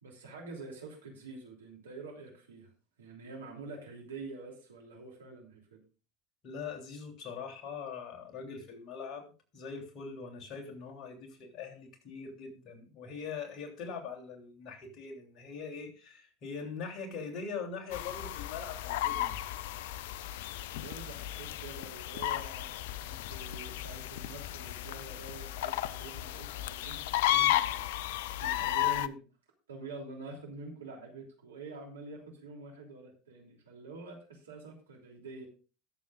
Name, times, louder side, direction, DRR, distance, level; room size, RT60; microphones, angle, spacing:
voice 1, 0.0-2.7 3.0-5.8 20.7-27.0 27.3-28.0 28.4-29.2 29.7-35.5, right 3 dB, 80° right, 1 dB, 2.9 m, -46 dB
voice 2, 6.4-19.5, left 5 dB, 45° left, 2 dB, 3.2 m, -42 dB
sound 1, 17.9-29.1, left 14 dB, 65° left, 0.5 m, -34 dB
21.0 x 7.2 x 2.5 m, 0.35 s
figure-of-eight pair, 80°, 0 cm